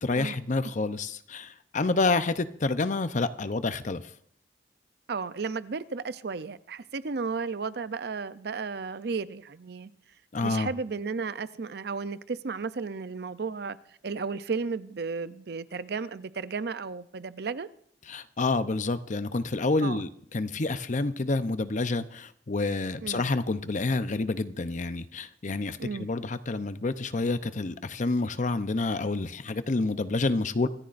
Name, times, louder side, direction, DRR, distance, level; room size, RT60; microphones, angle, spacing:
voice 1, 0.0-4.0 10.3-10.7 18.1-30.7, left 3 dB, 45° left, 0.7 m, -28 dB
voice 2, 5.1-9.9 10.4-13.8 14.0-17.7 19.8-20.0 23.0-23.2 25.8-26.1, right 4 dB, 65° right, 0.6 m, -34 dB
25.0 x 14.5 x 2.6 m
head